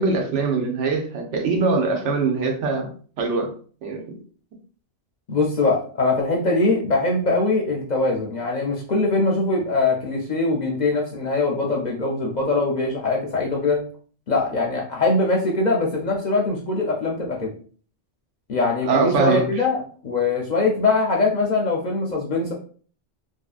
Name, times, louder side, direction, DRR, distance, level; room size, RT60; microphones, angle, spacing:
voice 1, 0.0-3.5 3.8-4.0 18.8-19.6, right 4 dB, 85° right, 2 dB, 1.1 m, -22 dB
voice 2, 5.3-13.8 14.3-17.5 18.5-22.5, left 3 dB, 55° left, 0 dB, 0.5 m, -22 dB
2.7 x 2.6 x 2.4 m, 0.43 s
omnidirectional pair, 1.2 m